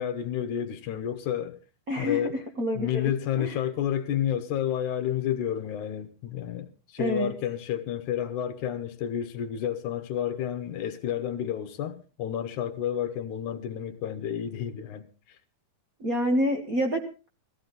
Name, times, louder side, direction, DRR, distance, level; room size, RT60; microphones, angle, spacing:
voice 1, 0.0-1.6 2.0-2.4 2.8-15.1, left 10 dB, 70° left, 2.3 m, -30 dB
voice 2, 1.9-2.2 2.6-3.1 3.4-3.6 7.0-7.3 16.0-17.3, equal, 45° right, 1.2 m, -27 dB
17.5 x 14.5 x 4.0 m
omnidirectional pair, 3.8 m